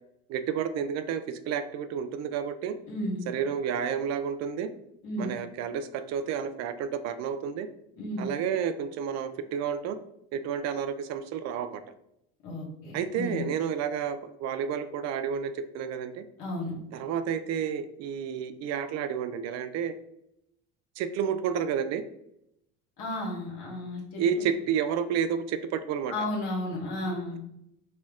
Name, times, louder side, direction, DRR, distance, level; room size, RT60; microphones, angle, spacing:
voice 1, 0.3-2.7 3.3-4.7 5.2-7.7 8.2-10.0 10.3-11.8 12.9-16.2 16.9-19.9 21.0-22.0 24.2-26.3, right 7 dB, 55° right, 11 dB, 0.4 m, -30 dB
voice 2, 2.9-3.2 5.0-5.3 8.0-8.3 12.4-13.4 16.4-16.8 23.0-24.4 26.1-27.4, left 1 dB, 70° left, -4 dB, 1.4 m, -33 dB
4.3 x 2.3 x 3.5 m, 0.78 s
supercardioid pair, 90°, 32 cm